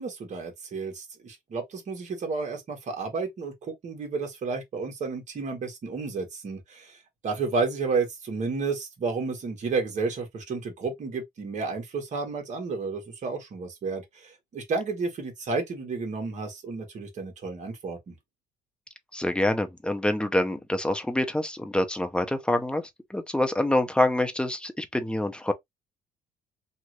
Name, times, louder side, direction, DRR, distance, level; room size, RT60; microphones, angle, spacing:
voice 1, 0.0-18.1, right 4 dB, 45° right, 1.4 m, -31 dB
voice 2, 19.1-25.5, left 1 dB, 5° left, 0.6 m, -26 dB
2.9 x 2.5 x 3.0 m
cardioid pair, 110°, 17 cm